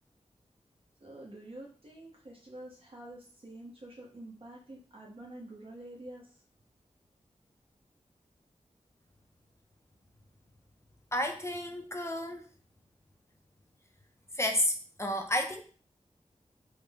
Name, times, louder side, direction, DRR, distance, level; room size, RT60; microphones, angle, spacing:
voice 1, 1.0-6.3, right 1 dB, 45° right, -2 dB, 0.8 m, -47 dB
voice 2, 11.1-12.5 14.3-15.6, left 1 dB, 20° left, 4 dB, 0.4 m, -31 dB
3.7 x 2.0 x 3.4 m, 0.39 s
wide cardioid pair, 85°, 13 cm